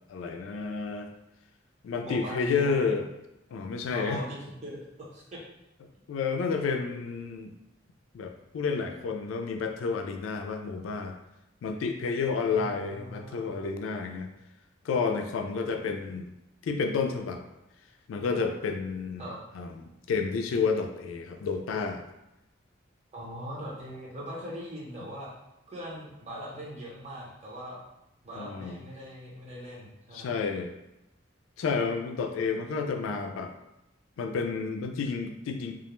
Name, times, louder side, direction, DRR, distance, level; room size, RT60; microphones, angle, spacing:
voice 1, 0.1-1.1 1.8-3.1 3.5-4.2 6.1-7.5 8.1-11.1 11.6-14.3 14.8-16.3 16.6-17.4 18.1-19.3 19.5-19.8 20.1-22.0 28.3-28.8 30.1-30.7 31.6-33.5 34.2-35.7, left 5 dB, 85° left, 5 dB, 0.3 m, -30 dB
voice 2, 2.0-2.8 3.9-4.8 5.1-5.4 12.5-13.7 19.2-19.4 23.1-25.3 25.7-27.8 28.2-30.4, equal, 35° right, -6 dB, 0.7 m, -41 dB
2.3 x 2.1 x 3.0 m, 0.89 s
head